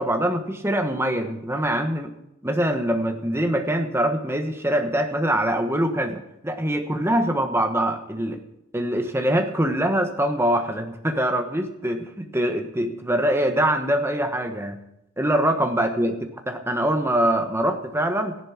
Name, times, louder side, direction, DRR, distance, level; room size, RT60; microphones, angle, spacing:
voice 1, 0.0-2.1 2.4-8.4 8.7-14.8 15.2-16.2 16.5-18.4, right 1 dB, 10° right, 6 dB, 1.2 m, -23 dB
14.0 x 10.5 x 5.9 m, 0.83 s
head